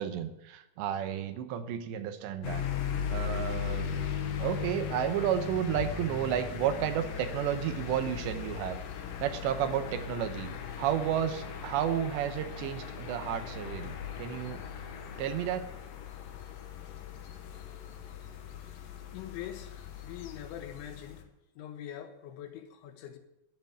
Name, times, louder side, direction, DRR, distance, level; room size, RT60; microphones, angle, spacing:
voice 1, 0.0-2.7 3.1-4.0 4.4-8.8 9.2-13.9 14.2-14.6 15.2-15.7, right 10 dB, 80° right, 3.0 m, -32 dB
sound 1, 2.4-21.2, left 7 dB, 65° left, 2.5 m, -38 dB
voice 2, 19.1-21.3 21.6-23.2, left 10 dB, 85° left, 3.6 m, -43 dB
12.0 x 8.1 x 10.0 m
omnidirectional pair, 5.3 m